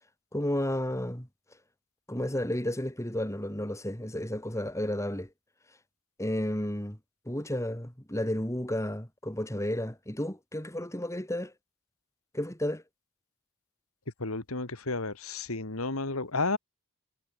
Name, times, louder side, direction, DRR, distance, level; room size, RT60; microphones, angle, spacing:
voice 1, 0.3-1.3 2.1-5.3 6.2-7.0 7.3-11.5 12.3-12.8, left 1 dB, 15° left, 3.0 m, -32 dB
voice 2, 14.2-16.6, left 3 dB, 70° left, 2.4 m, -32 dB
head